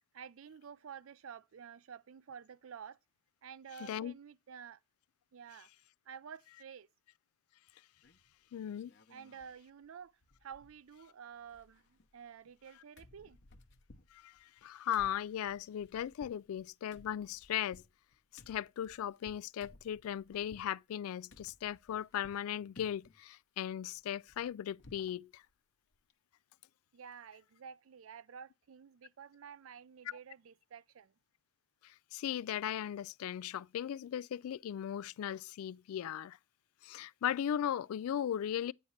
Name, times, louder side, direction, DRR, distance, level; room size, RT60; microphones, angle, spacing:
voice 1, 0.1-3.0 3.4-4.8 5.3-5.7 6.1-6.9 9.1-10.1 10.4-13.4 26.9-31.1, right 7 dB, 70° right, 0.4 m, -51 dB
voice 2, 3.8-4.1 8.5-8.9 14.1-17.8 18.5-25.4 31.8-36.4 36.8-38.7, left 10 dB, 85° left, 0.3 m, -37 dB
sound 1, 8.0-8.4 8.8-9.6 9.8-9.9 10.2-11.1 11.3-12.7 13.0-20.7 21.3-22.5 22.8-23.2 23.6-25.2 25.5-25.6 25.9-26.1, left 2 dB, 55° left, 0.9 m, -60 dB
9.1 x 3.1 x 5.6 m
head